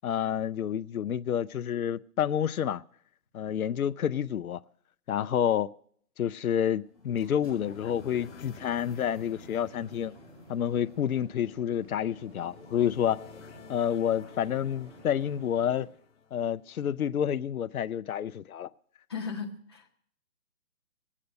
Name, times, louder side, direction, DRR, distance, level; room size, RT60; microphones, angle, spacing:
voice 1, 0.0-2.8 3.3-4.6 5.1-5.7 6.2-10.2 10.5-13.2 13.7-15.9 16.3-18.7, left 9 dB, 70° left, 0.6 m, -29 dB
sound 1, 6.7-16.8, left 6 dB, 50° left, 0.9 m, -52 dB
sound 2, 6.9-15.8, right 1 dB, 15° right, 5.3 m, -52 dB
voice 2, 19.1-19.9, left 5 dB, 15° left, 0.8 m, -36 dB
19.0 x 8.5 x 6.5 m
hypercardioid pair, 165°, 45 cm